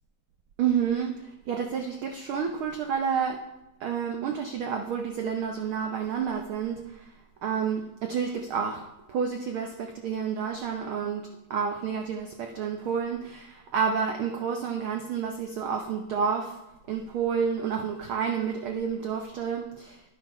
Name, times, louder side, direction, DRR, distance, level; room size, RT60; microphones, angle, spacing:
voice 1, 0.6-3.4 3.8-7.1 7.4-8.8 9.1-16.6 16.9-20.0, right 7 dB, 85° right, 5 dB, 1.1 m, -30 dB
12.0 x 10.5 x 4.3 m, 0.96 s
omnidirectional pair, 3.5 m